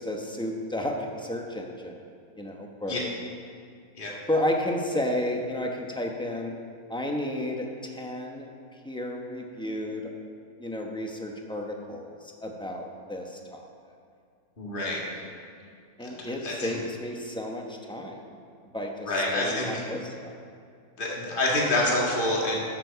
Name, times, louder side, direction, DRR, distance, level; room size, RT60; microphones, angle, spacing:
voice 1, 0.0-2.0 2.4-3.2 4.3-6.5 6.9-8.5 8.8-10.1 10.6-13.7 16.0-18.4 18.7-20.4, left 1 dB, 5° left, 1 dB, 0.8 m, -32 dB
voice 2, 14.6-15.0 16.0-16.1 16.4-16.7 19.1-19.7 21.0-22.6, left 1 dB, 35° left, -3 dB, 1.9 m, -27 dB
11.0 x 6.8 x 6.9 m, 2.3 s
omnidirectional pair, 1.6 m